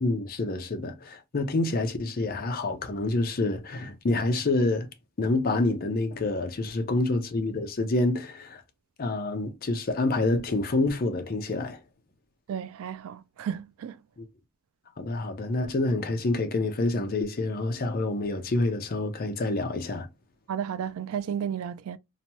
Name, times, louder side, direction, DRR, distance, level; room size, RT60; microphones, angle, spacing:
voice 1, 0.0-4.9 5.2-8.6 9.0-11.8 14.2-14.3 15.0-20.1, left 2 dB, 45° left, 0.5 m, -27 dB
voice 2, 12.5-14.0 20.5-22.0, right 8 dB, 70° right, 0.3 m, -33 dB
2.9 x 2.2 x 2.8 m
head